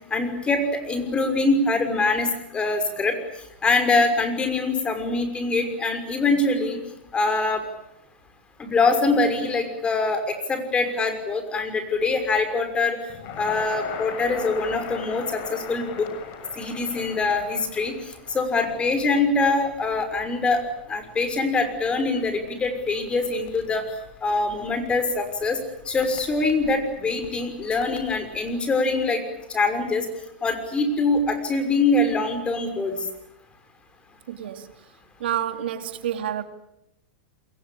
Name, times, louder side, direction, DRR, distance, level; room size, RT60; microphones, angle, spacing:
voice 1, 0.1-3.2 3.6-6.8 7.1-7.6 8.6-13.0 13.4-16.1 16.6-20.6 20.9-23.8 24.2-25.6 25.9-29.2 29.5-30.1 30.4-33.1, left 3 dB, 20° left, 7 dB, 6.0 m, -24 dB
Crackle, 13.1-28.6, left 7 dB, 45° left, 6.5 m, -41 dB
voice 2, 34.3-34.7 35.2-36.4, right 10 dB, 75° right, 8 dB, 2.6 m, -28 dB
28.5 x 22.0 x 8.8 m, 0.83 s
hypercardioid pair, 125°, 6 cm